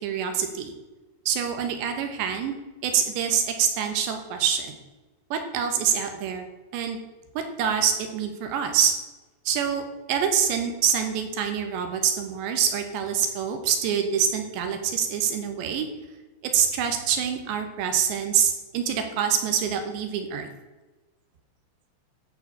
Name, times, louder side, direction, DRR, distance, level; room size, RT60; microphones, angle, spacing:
voice 1, 0.0-0.7 1.3-2.5 2.8-4.7 5.3-6.5 6.7-7.0 7.3-8.9 9.5-15.9 16.5-20.5, right 8 dB, 80° right, 5 dB, 3.4 m, -25 dB
13.5 x 5.1 x 6.9 m, 1.2 s
omnidirectional pair, 5.2 m